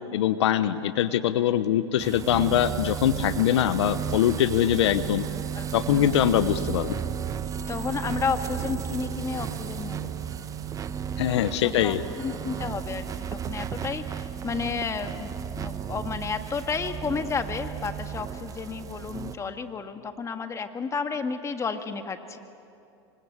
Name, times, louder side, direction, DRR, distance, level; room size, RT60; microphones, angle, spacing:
voice 1, 0.1-5.3 5.7-7.0 11.2-12.0, left 10 dB, 75° left, 13 dB, 1.0 m, -23 dB
sound 1, 2.0-19.4, right 8 dB, 25° right, 1.3 m, -34 dB
voice 2, 5.5-6.2 7.7-10.1 11.6-22.4, left 5 dB, 20° left, 7 dB, 1.8 m, -32 dB
27.5 x 25.0 x 8.2 m, 2.6 s
hypercardioid pair, 115°, 15 cm